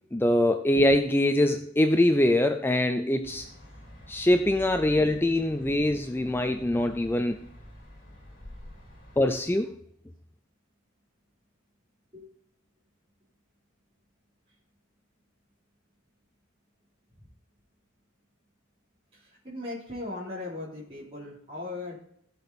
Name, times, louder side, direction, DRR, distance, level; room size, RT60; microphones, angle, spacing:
voice 1, 0.1-3.5 4.1-7.4 9.2-9.7, left 1 dB, 10° left, 7 dB, 0.4 m, -23 dB
sound 1, 3.2-9.4, equal, 40° left, 4.2 m, -48 dB
voice 2, 19.1-22.0, left 2 dB, 30° right, -7 dB, 3.4 m, -38 dB
17.0 x 6.1 x 4.1 m, 0.70 s
head